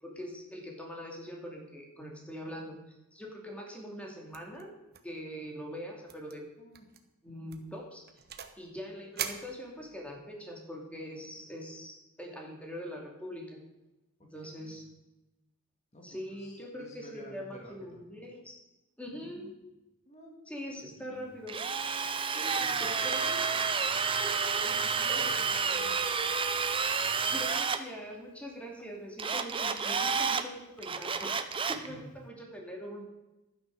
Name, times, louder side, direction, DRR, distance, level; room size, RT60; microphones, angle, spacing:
voice 1, 0.0-2.8 3.1-4.7 5.0-6.4 7.2-8.0 8.6-13.6 14.3-14.8 16.0-18.6 19.0-19.5 20.5-21.6 22.3-23.8 24.2-24.8 25.1-25.4 27.3-31.4 31.7-33.0, equal, 5° left, 0 dB, 2.5 m, -43 dB
sound 1, 4.3-4.6 4.9-5.2 5.4-5.5 6.1-6.3 6.7-7.0 7.5-8.6 9.2-10.1, right 9 dB, 45° right, 1.1 m, -41 dB
voice 2, 14.4-14.7 15.9-18.0 19.1-19.5 20.1-20.4 20.9-21.3 22.6-23.0 24.6-26.1 31.9-32.1, left 1 dB, 30° left, 0 dB, 2.3 m, -51 dB
Drill, 21.5-27.8 29.2-30.4 30.8-31.9, right 5 dB, 25° right, 0.7 m, -30 dB
12.0 x 9.7 x 6.5 m, 1.0 s
head